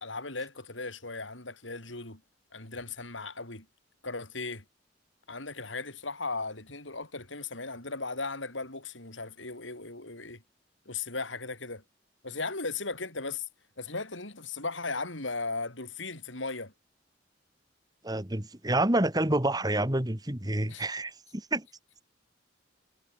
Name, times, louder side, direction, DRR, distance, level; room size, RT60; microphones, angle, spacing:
voice 1, 0.0-2.2 2.5-3.7 4.0-4.6 5.3-10.4 10.9-11.8 12.2-13.5 13.8-16.7 20.7-20.8, left 3 dB, 85° left, 7.5 m, -37 dB
voice 2, 18.0-21.7, right 1 dB, 20° right, 2.2 m, -28 dB
head